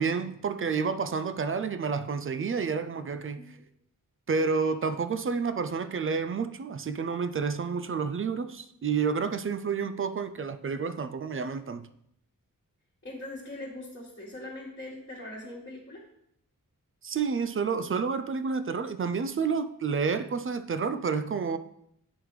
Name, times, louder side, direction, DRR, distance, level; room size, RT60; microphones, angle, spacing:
voice 1, 0.0-3.6 4.3-11.9 17.0-21.6, right 5 dB, 40° right, 0.4 m, -29 dB
voice 2, 13.0-16.0, left 1 dB, 35° left, 1.5 m, -41 dB
7.4 x 3.3 x 4.7 m
wide cardioid pair, 70°, 34 cm